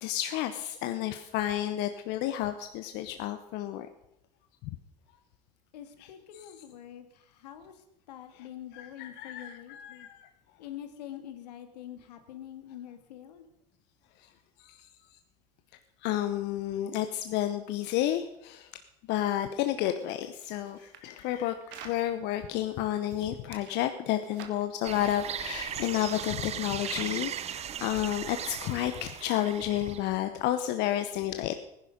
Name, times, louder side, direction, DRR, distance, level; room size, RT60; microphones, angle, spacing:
voice 1, 0.0-3.9 4.6-4.7 6.0-6.4 8.3-8.4 8.7-10.3 14.6-14.9 16.0-18.7 19.1-31.6, left 12 dB, 60° left, 8 dB, 0.9 m, -31 dB
voice 2, 5.7-10.1 10.6-13.5, left 11 dB, 80° left, 8 dB, 1.8 m, -45 dB
sound 1, 20.0-22.0 22.7-23.8 24.1-24.7 25.5-27.4, right 8 dB, 60° right, 1.9 m, -50 dB
sound 2, 24.8-30.1, right 9 dB, 30° right, 0.6 m, -38 dB
15.5 x 10.5 x 5.2 m, 0.81 s
hypercardioid pair, 85°, 21 cm